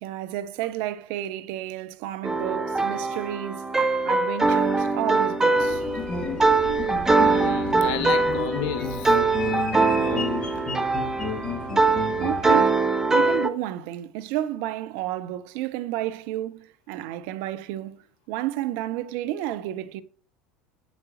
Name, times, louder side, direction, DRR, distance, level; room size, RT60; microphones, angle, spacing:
voice 1, 0.0-5.8 12.2-12.8 13.1-20.0, right 13 dB, 55° right, 0.5 m, -31 dB
sound 1, 2.2-13.5, right 3 dB, 10° right, 0.8 m, -23 dB
sound 2, 5.6-12.6, left 4 dB, 20° left, 2.0 m, -32 dB
voice 2, 7.2-9.2 9.9-10.3, left 8 dB, 55° left, 1.1 m, -33 dB
8.1 x 7.1 x 2.8 m
figure-of-eight pair, 70°, 4 cm